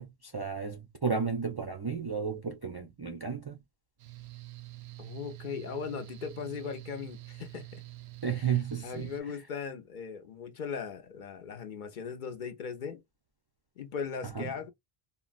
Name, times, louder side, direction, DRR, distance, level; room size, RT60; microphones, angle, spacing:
voice 1, 0.0-3.6 8.2-9.4 14.2-14.5, right 6 dB, 40° right, 0.3 m, -33 dB
Mechanical fan, 4.0-9.2, right 18 dB, 85° right, 0.8 m, -46 dB
voice 2, 5.0-7.7 8.8-13.0 13.8-14.7, left 6 dB, 60° left, 0.7 m, -38 dB
3.9 x 2.0 x 2.4 m
omnidirectional pair, 1.0 m